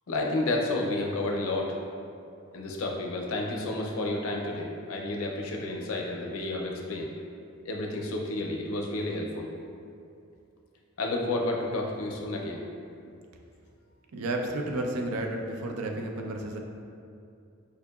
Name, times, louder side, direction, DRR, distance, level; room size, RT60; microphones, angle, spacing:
voice 1, 0.1-1.8 2.5-7.1 7.6-9.5 11.0-12.6, left 2 dB, 75° left, 0 dB, 0.5 m, -31 dB
voice 2, 14.1-16.6, right 1 dB, 90° right, 2 dB, 0.4 m, -32 dB
4.7 x 2.7 x 2.3 m, 2.4 s
head